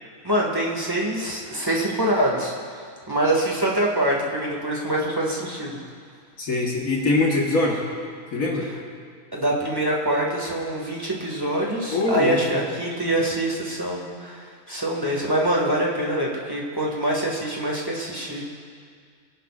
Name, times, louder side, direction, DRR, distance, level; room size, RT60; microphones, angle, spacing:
voice 1, 0.2-2.5 3.1-5.8 9.3-18.5, right 1 dB, 15° right, -3 dB, 1.9 m, -25 dB
voice 2, 6.4-7.8 8.3-8.7 11.9-12.4, left 2 dB, 65° left, -2 dB, 1.9 m, -22 dB
23.0 x 11.0 x 2.5 m, 2.1 s
omnidirectional pair, 1.6 m